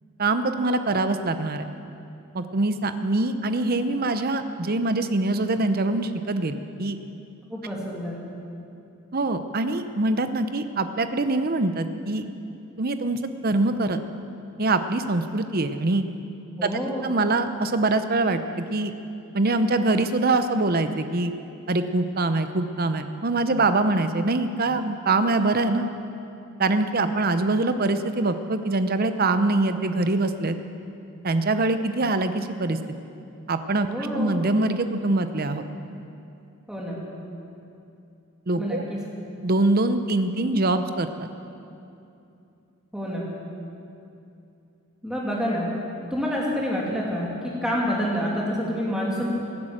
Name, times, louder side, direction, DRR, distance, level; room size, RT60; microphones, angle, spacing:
voice 1, 0.2-1.7 2.3-7.0 9.1-12.3 12.8-14.0 14.6-16.0 16.6-16.7 17.0-18.9 19.3-21.3 21.7-25.9 26.6-30.6 31.2-32.8 33.5-33.9 34.1-35.7 38.5-38.8 39.4-41.1, right 2 dB, 40° right, 9 dB, 0.7 m, -24 dB
voice 2, 7.5-8.1 16.6-17.1 33.8-34.3 36.7-37.0 38.6-39.0 42.9-43.3 45.0-45.7 46.1-47.3 47.6-49.4, equal, 5° right, -4 dB, 2.6 m, -27 dB
18.0 x 11.0 x 7.5 m, 2.7 s
head